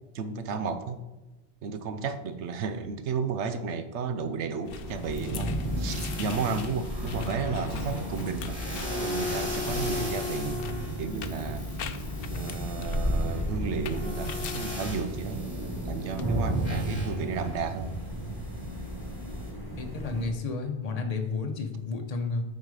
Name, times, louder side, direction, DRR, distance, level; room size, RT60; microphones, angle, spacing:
voice 1, 0.1-1.0 1.6-8.6 9.0-10.7 11.0-11.7 12.3-15.4 15.8-18.0, right 5 dB, 80° right, 10 dB, 1.0 m, -33 dB
sound 1, 4.6-16.2, left 7 dB, 60° left, 0.7 m, -44 dB
sound 2, 4.7-20.3, right 1 dB, 20° right, 1.2 m, -33 dB
sound 3, 4.9-19.5, left 2 dB, 10° left, 2.8 m, -39 dB
voice 2, 19.8-22.4, left 4 dB, 35° left, 4 dB, 0.9 m, -31 dB
8.8 x 4.9 x 4.8 m, 1.1 s
omnidirectional pair, 1.2 m